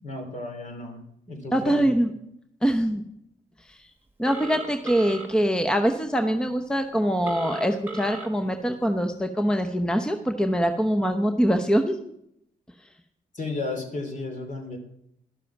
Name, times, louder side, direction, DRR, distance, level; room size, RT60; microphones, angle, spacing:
voice 1, 0.0-1.9 13.3-14.8, left 3 dB, 50° left, 4 dB, 3.0 m, -34 dB
voice 2, 1.5-2.1 2.6-3.0 3.7-3.8 4.2-12.1, equal, 5° left, 6 dB, 0.8 m, -24 dB
Telephone, 4.3-5.3 7.2-8.3, right 3 dB, 10° right, 1.7 m, -36 dB
12.0 x 7.0 x 5.9 m, 0.76 s
supercardioid pair, 60°, 17 cm